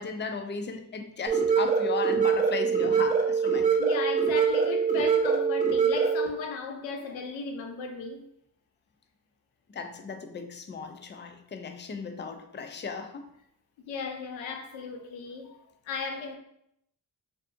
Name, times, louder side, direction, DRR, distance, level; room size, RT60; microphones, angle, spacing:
voice 1, 0.0-3.7 9.7-13.3, left 4 dB, 25° left, 0.4 m, -36 dB
sound 1, 1.3-6.3, right 6 dB, 15° right, 0.6 m, -24 dB
voice 2, 3.8-8.3 13.9-16.4, left 4 dB, 85° left, 0.6 m, -36 dB
2.6 x 2.4 x 2.5 m
supercardioid pair, 45°, 45 cm